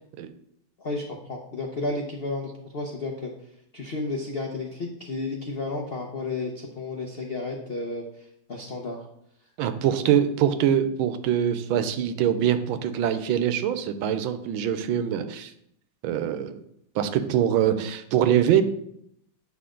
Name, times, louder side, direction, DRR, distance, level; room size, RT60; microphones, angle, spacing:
voice 1, 0.8-3.3 3.7-9.0, left 2 dB, 65° left, 1 dB, 0.5 m, -32 dB
voice 2, 9.6-15.5 16.0-16.6 16.9-18.6, right 10 dB, 80° right, 10 dB, 1.4 m, -23 dB
8.4 x 5.7 x 3.7 m, 0.73 s
omnidirectional pair, 2.2 m